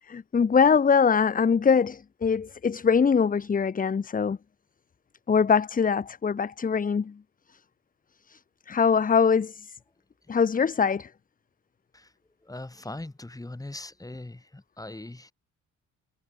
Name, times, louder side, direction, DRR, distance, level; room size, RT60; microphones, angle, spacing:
voice 1, 0.1-4.4 5.3-7.1 8.3-8.4 8.7-9.7 10.3-11.1, left 6 dB, 30° left, 0.9 m, -23 dB
voice 2, 12.4-15.3, left 2 dB, 10° left, 5.1 m, -40 dB
cardioid pair, 90°, 30 cm